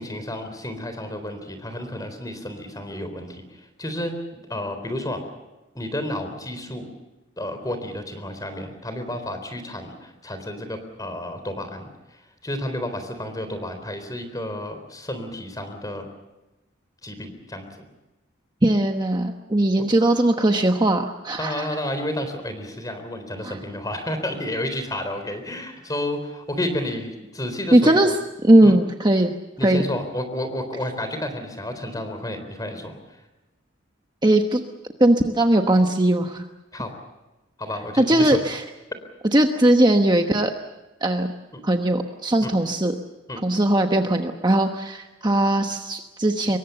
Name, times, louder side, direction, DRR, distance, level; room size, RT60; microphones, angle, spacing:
voice 1, 0.0-4.1 4.5-5.2 5.7-6.9 7.4-16.1 17.0-17.8 21.4-28.0 28.6-28.8 29.6-33.2 36.7-36.9 37.6-38.4 41.5-41.6 42.4-42.5 43.3-43.4, left 1 dB, 20° left, 8 dB, 3.9 m, -31 dB
voice 2, 18.6-21.7 23.4-23.6 27.7-28.2 28.4-29.3 29.6-29.8 34.2-34.6 35.0-36.4 38.0-38.6 39.3-40.5 41.0-41.3 41.6-42.9 43.4-46.6, right 1 dB, 20° right, 4 dB, 1.1 m, -19 dB
25.5 x 22.5 x 6.9 m, 1.1 s
head